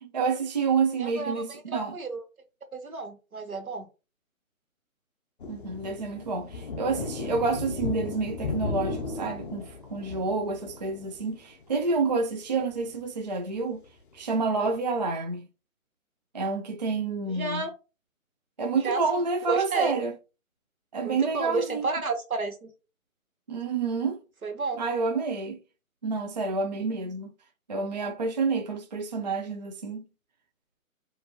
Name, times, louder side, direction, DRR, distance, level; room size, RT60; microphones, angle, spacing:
voice 1, 0.0-2.0 5.5-13.8 14.1-15.5 16.3-17.6 18.6-20.1 20.9-21.9 23.5-24.2 24.8-25.6 26.0-27.3 27.7-30.0, right 4 dB, 35° right, 0.4 m, -28 dB
voice 2, 1.0-2.2 2.7-3.9 17.3-17.7 18.7-19.9 21.0-22.7 24.4-24.8, right 4 dB, 85° right, 1.4 m, -32 dB
sound 1, 5.4-11.6 11.9-12.1 12.6-13.0 13.5-13.6 14.7-14.8, left 4 dB, 40° left, 0.6 m, -36 dB
4.8 x 2.6 x 2.9 m
figure-of-eight pair, 145°, 41 cm